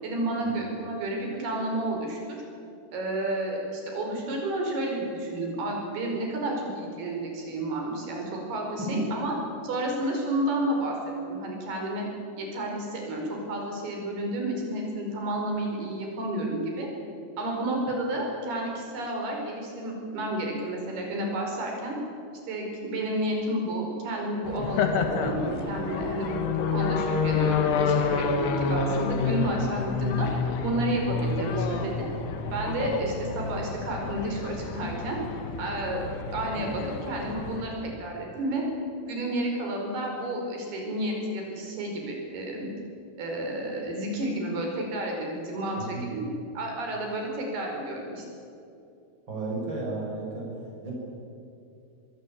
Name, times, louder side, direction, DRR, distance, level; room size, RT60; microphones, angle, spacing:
voice 1, 0.0-2.2 2.9-9.4 9.6-12.1 12.4-16.9 17.4-22.0 22.5-30.3 30.6-32.1 32.5-35.2 35.6-36.0 36.3-38.6 39.1-42.7 43.2-46.3 46.6-48.3, right 1 dB, 65° right, 0 dB, 7.0 m, -31 dB
sound 1, 24.5-37.6, left 5 dB, 70° left, 3.8 m, -29 dB
voice 2, 45.8-46.1 49.3-50.5 50.8-50.9, right 2 dB, 25° right, -2 dB, 6.9 m, -32 dB
24.5 x 21.5 x 8.7 m, 2.7 s
omnidirectional pair, 4.9 m